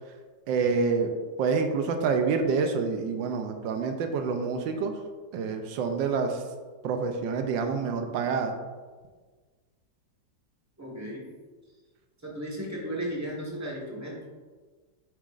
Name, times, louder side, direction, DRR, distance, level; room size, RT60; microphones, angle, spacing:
voice 1, 0.5-1.1 1.4-4.9 5.3-6.3 6.8-8.5, right 5 dB, 90° right, 5 dB, 1.3 m, -27 dB
voice 2, 10.8-11.2 12.2-14.2, equal, 10° right, -3 dB, 1.1 m, -35 dB
7.5 x 6.1 x 2.5 m, 1.4 s
omnidirectional pair, 2.0 m